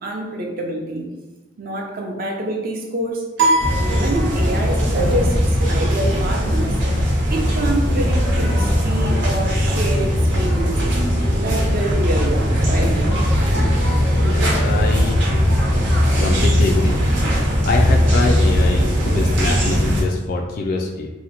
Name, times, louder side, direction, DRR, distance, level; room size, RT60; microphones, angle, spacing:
voice 1, 0.0-1.1 1.6-3.2 3.8-5.4 5.7-6.8 7.3-11.0 11.4-13.0, right 1 dB, 50° right, 1 dB, 0.6 m, -26 dB
sound 1, 3.4-4.8, right 2 dB, 65° right, 1.0 m, -21 dB
sound 2, 3.6-20.0, equal, 90° right, 1.0 m, -18 dB
voice 2, 14.1-15.2 16.2-17.0 17.7-21.1, left 3 dB, 50° left, 0 dB, 0.3 m, -24 dB
2.8 x 2.1 x 4.1 m, 1.1 s
head